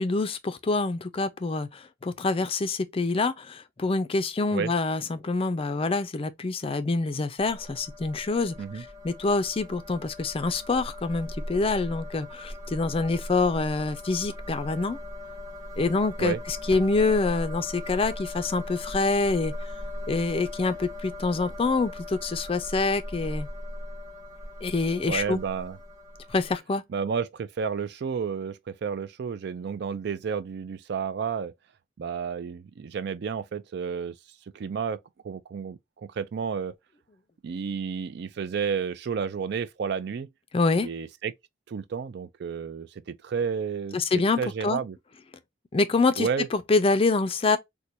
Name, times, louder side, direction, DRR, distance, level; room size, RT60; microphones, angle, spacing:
voice 1, 0.0-15.0 15.8-19.5 20.1-23.5 24.6-25.4 26.3-26.8 40.5-40.9 43.9-44.8 45.7-47.6, left 3 dB, 30° left, 0.4 m, -26 dB
sound 1, 7.4-26.6, left 1 dB, 20° right, 1.0 m, -39 dB
voice 2, 25.1-25.8 26.9-31.5 32.0-34.1 34.5-35.0 35.2-35.8 36.1-36.7 37.4-40.3 40.8-41.3 41.7-45.0 46.2-46.5, right 6 dB, 60° right, 0.4 m, -31 dB
4.4 x 2.2 x 2.6 m
head